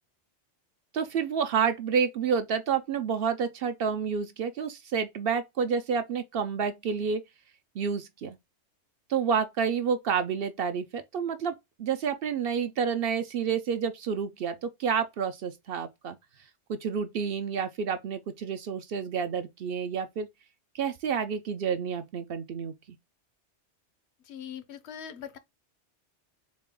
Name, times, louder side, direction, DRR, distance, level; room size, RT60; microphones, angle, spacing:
voice 1, 0.9-7.2 7.7-8.4 9.1-11.5 11.8-16.2 16.7-20.3 20.7-22.7, right 6 dB, 60° right, 0.7 m, -29 dB
voice 2, 24.2-25.4, left 8 dB, 70° left, 0.9 m, -41 dB
4.1 x 2.2 x 3.6 m
omnidirectional pair, 1.2 m